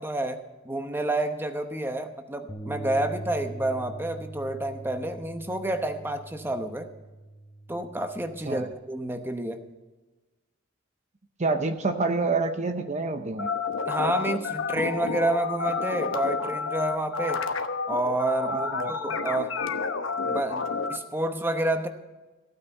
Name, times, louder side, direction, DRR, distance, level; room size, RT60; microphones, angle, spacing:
voice 1, 0.0-6.9 7.7-9.7 13.8-17.4 17.9-19.6 20.2-21.9, right 1 dB, 10° right, 7 dB, 0.9 m, -29 dB
Bass guitar, 2.5-8.7, right 2 dB, 15° left, 0.9 m, -42 dB
voice 2, 11.4-13.5 18.5-18.9, right 3 dB, 35° right, 8 dB, 0.7 m, -27 dB
sound 1, 13.4-21.0, left 4 dB, 80° left, 1.0 m, -30 dB
15.0 x 9.3 x 5.4 m, 1.2 s
head